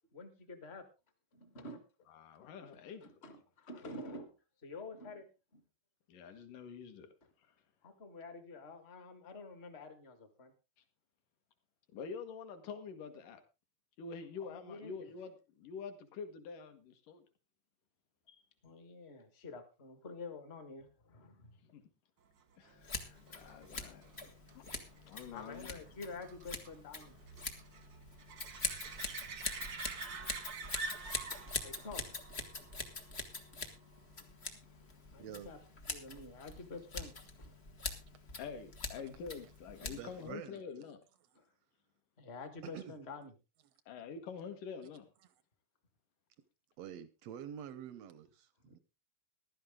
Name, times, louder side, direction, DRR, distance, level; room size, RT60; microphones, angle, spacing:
voice 1, 0.1-0.8 1.3-1.8 3.0-4.3 4.6-5.3 5.5-5.6 7.8-10.5 14.4-15.0 18.3-21.5 24.8-24.9 25.3-27.2 28.8-28.9 30.2-30.3 31.2-32.0 35.1-35.6 35.9-37.1 37.4-37.5 41.3-41.5 42.2-43.3 48.6-48.7, left 3 dB, 35° left, 1.1 m, -48 dB
voice 2, 2.1-3.2 6.1-7.1 11.9-13.4 14.0-17.2 21.7-21.8 22.6-24.1 24.5-24.7 25.1-25.7 38.4-41.0 43.9-45.1, left 5 dB, 70° left, 3.0 m, -46 dB
sound 1, 22.6-33.9 39.6-39.7, right 4 dB, 60° right, 1.1 m, -48 dB
Scissors, 22.8-40.3, left 3 dB, 85° left, 0.5 m, -44 dB
voice 3, 35.2-35.5 39.0-39.1 39.8-40.6 42.6-43.0 46.8-48.8, right 9 dB, 75° right, 1.5 m, -47 dB
15.0 x 12.0 x 3.7 m
omnidirectional pair, 4.0 m